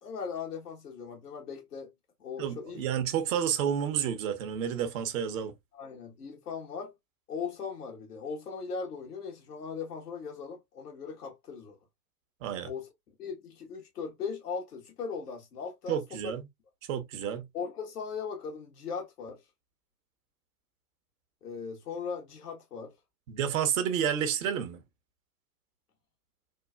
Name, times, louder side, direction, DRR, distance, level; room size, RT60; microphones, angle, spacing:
voice 1, 0.0-1.9 2.2-2.8 5.7-6.9 7.3-11.8 12.6-12.9 13.2-16.0 16.2-16.4 17.5-19.4 21.4-22.9, left 5 dB, 75° left, 1.5 m, -38 dB
voice 2, 2.4-5.5 12.4-12.7 15.9-16.4 16.9-17.5 23.3-24.8, right 8 dB, 55° right, 1.0 m, -30 dB
3.7 x 2.4 x 2.2 m
figure-of-eight pair, 90°, 46 cm